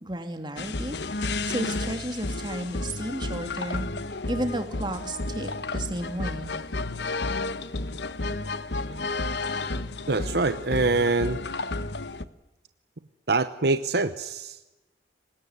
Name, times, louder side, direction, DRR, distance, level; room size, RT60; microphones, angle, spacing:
voice 1, 0.0-3.9 4.3-6.5, right 1 dB, 25° right, 6 dB, 2.6 m, -33 dB
sound 1, 0.6-12.2, left 2 dB, 65° left, 1.0 m, -32 dB
voice 2, 10.1-11.4 13.3-14.6, right 3 dB, 55° right, 11 dB, 0.9 m, -24 dB
24.5 x 20.5 x 9.7 m, 1.1 s
head